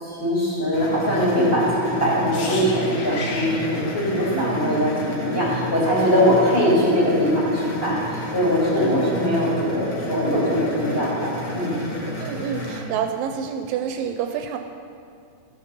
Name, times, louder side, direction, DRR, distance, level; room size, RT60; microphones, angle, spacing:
voice 1, 0.0-11.8, equal, 20° left, -7 dB, 2.2 m, -21 dB
sound 1, 0.7-12.8, equal, 50° left, 2.1 m, -32 dB
voice 2, 1.4-1.8 4.3-4.9 8.8-9.2 12.2-14.6, right 7 dB, 80° right, 5 dB, 2.1 m, -28 dB
sound 2, 2.3-6.2 6.4-6.6, left 3 dB, 75° left, 2.8 m, -35 dB
14.0 x 5.2 x 5.6 m, 2.3 s
omnidirectional pair, 4.1 m